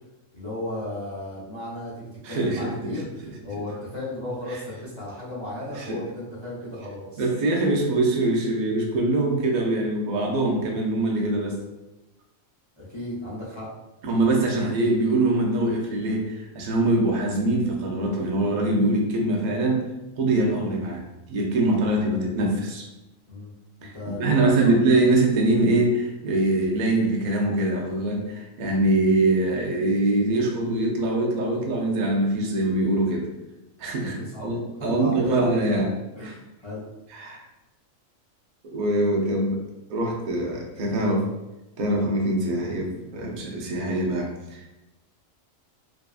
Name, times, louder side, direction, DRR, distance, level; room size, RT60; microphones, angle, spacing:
voice 1, 0.3-7.2 12.8-13.7 23.3-23.5 23.8-24.7 34.0-34.5 34.8-35.9 36.2-36.9, left 1 dB, 35° left, -9 dB, 0.4 m, -35 dB
voice 2, 2.2-3.3 4.5-4.6 5.7-6.0 7.2-11.6 14.0-19.9 20.2-22.9 23.8-33.3 33.8-35.9 36.2-36.3 37.1-37.4 38.6-39.6 39.9-41.3 41.8-44.8, right 2 dB, 90° right, 0 dB, 0.4 m, -23 dB
2.6 x 2.4 x 2.3 m, 0.99 s
omnidirectional pair, 1.4 m